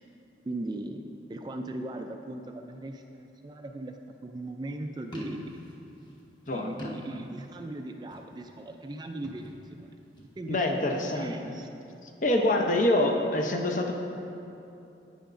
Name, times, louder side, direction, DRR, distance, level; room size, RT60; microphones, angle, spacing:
voice 1, 0.4-1.0 1.3-4.0 4.2-5.6 6.5-10.0 10.4-11.7, right 1 dB, 25° right, 5 dB, 0.3 m, -38 dB
sound 1, 5.0-7.7 7.9-8.5 9.1-10.4, equal, 25° left, 1.0 m, -45 dB
voice 2, 6.5-6.9 10.5-11.5 12.0-13.9, left 1 dB, 45° left, 3 dB, 0.7 m, -26 dB
10.0 x 9.1 x 2.5 m, 2.8 s
head